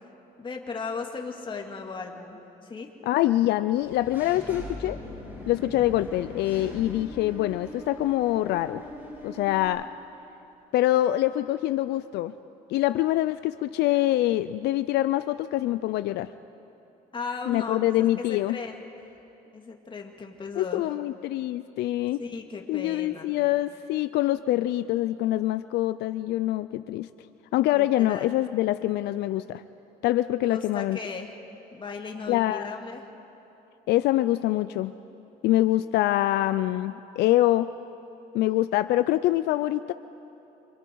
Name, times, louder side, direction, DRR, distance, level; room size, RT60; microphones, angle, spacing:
voice 1, 0.4-2.9 17.1-18.8 19.5-20.9 22.2-23.4 27.7-28.4 30.4-31.4 31.7-33.0, left 4 dB, 30° left, 2 dB, 2.4 m, -36 dB
voice 2, 3.1-5.0 5.5-8.8 9.2-9.9 10.7-12.3 12.7-16.3 17.5-18.6 20.6-22.2 22.7-27.1 27.5-29.6 30.0-31.0 32.3-32.7 33.9-34.9 35.4-37.7 38.3-39.9, left 15 dB, 80° left, 12 dB, 0.5 m, -25 dB
Engine / Mechanisms, 3.7-9.7, left 1 dB, 10° right, 6.8 m, -41 dB
27.5 x 26.0 x 4.7 m, 2.9 s
cardioid pair, 110°, 17 cm